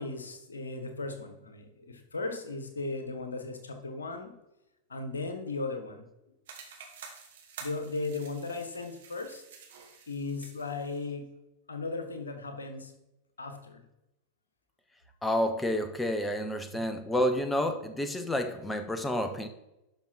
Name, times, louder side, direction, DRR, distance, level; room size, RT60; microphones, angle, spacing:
voice 1, 0.0-4.3 4.9-6.1 7.6-9.4 10.1-11.3 11.7-12.9 13.4-13.8 16.7-16.8, left 3 dB, 75° left, 6 dB, 1.4 m, -36 dB
sound 1, 6.5-11.1, right 6 dB, 60° right, 1.9 m, -49 dB
voice 2, 15.2-19.5, left 1 dB, 10° left, 8 dB, 0.8 m, -29 dB
11.5 x 5.5 x 4.4 m, 0.94 s
figure-of-eight pair, 90°, 0 cm